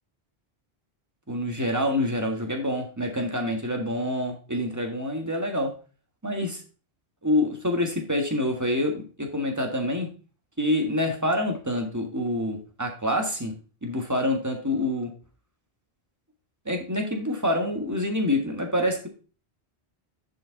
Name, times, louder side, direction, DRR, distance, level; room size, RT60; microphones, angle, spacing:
voice 1, 1.3-5.7 6.2-6.6 7.2-10.1 10.6-13.5 13.8-15.1 16.6-19.1, left 1 dB, 15° right, 2 dB, 1.7 m, -26 dB
10.5 x 5.2 x 3.9 m, 0.36 s
omnidirectional pair, 1.0 m